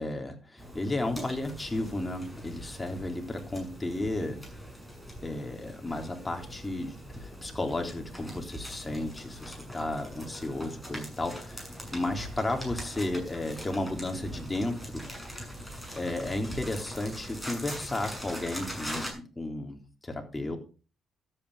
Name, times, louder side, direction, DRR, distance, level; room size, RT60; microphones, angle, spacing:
voice 1, 0.0-4.4 5.2-15.0 15.9-20.6, left 2 dB, 20° left, 3 dB, 3.6 m, -33 dB
sound 1, 0.6-19.1, equal, 5° right, 7.0 m, -42 dB
12.5 x 9.0 x 5.0 m, 0.35 s
supercardioid pair, 65°, 0 cm